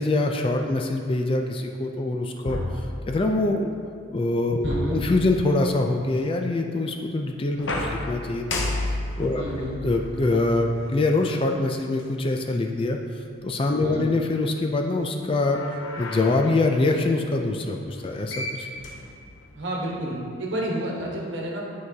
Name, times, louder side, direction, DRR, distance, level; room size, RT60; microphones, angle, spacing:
voice 1, 0.0-2.6 3.1-3.8 4.1-4.6 4.9-8.5 9.2-9.4 9.8-13.0 13.4-15.6 16.0-18.7, left 2 dB, 25° left, 3 dB, 0.3 m, -24 dB
sound 1, 2.5-3.6 4.6-5.8 7.6-11.2 12.0-12.1 15.3-16.6 18.0-18.1 18.3-19.6, left 2 dB, 70° left, 0.7 m, -32 dB
voice 2, 4.6-5.0 9.3-9.7 13.8-14.1 19.5-21.6, right 1 dB, 65° right, -3 dB, 1.2 m, -30 dB
8.7 x 4.6 x 2.8 m, 2.3 s
head